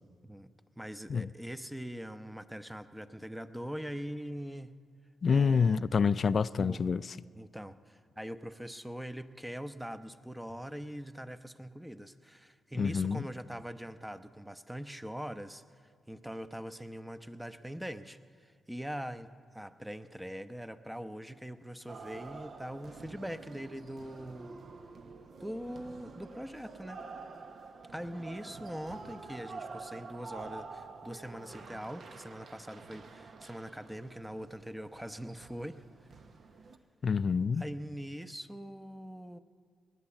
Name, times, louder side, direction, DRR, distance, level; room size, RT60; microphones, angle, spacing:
voice 1, 0.8-4.7 5.3-5.8 6.6-6.8 7.4-15.6 16.1-24.6 25.4-27.0 27.9-35.8 37.6-39.4, equal, 5° right, 11 dB, 0.8 m, -42 dB
voice 2, 5.2-7.0 12.8-13.3 37.0-37.6, left 5 dB, 55° left, 17 dB, 0.3 m, -27 dB
sound 1, 21.9-36.8, right 4 dB, 60° right, 0.9 m, -48 dB
19.0 x 10.0 x 7.2 m, 2.1 s
supercardioid pair, 50°, 0 cm